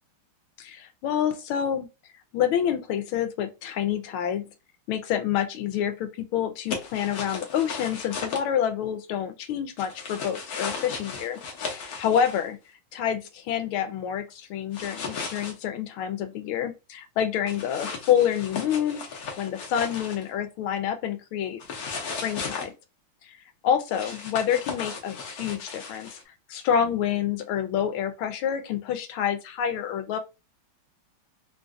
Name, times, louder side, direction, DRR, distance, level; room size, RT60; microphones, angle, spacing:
voice 1, 0.6-1.9 2.3-4.5 4.9-12.6 12.9-19.0 19.4-21.6 22.2-22.7 23.2-23.4 23.6-26.2 26.5-30.2, left 9 dB, 85° left, 1.5 m, -27 dB
sound 1, 6.7-8.4 9.8-12.4 14.7-15.5 17.5-20.3 21.6-22.7 23.9-26.2, left 5 dB, 60° left, 1.1 m, -36 dB
3.7 x 2.6 x 2.3 m
omnidirectional pair, 2.3 m